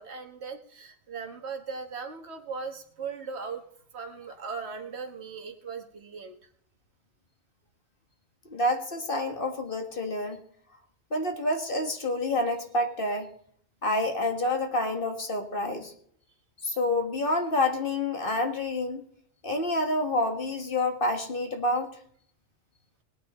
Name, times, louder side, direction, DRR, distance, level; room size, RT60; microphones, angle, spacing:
voice 1, 0.0-3.6 3.9-6.4, right 5 dB, 60° right, 4 dB, 1.8 m, -38 dB
voice 2, 8.5-10.4 11.1-13.3 13.8-15.9 16.6-19.0 19.4-22.0, left 1 dB, 45° left, 5 dB, 1.9 m, -28 dB
20.0 x 9.1 x 4.3 m, 0.63 s
omnidirectional pair, 1.3 m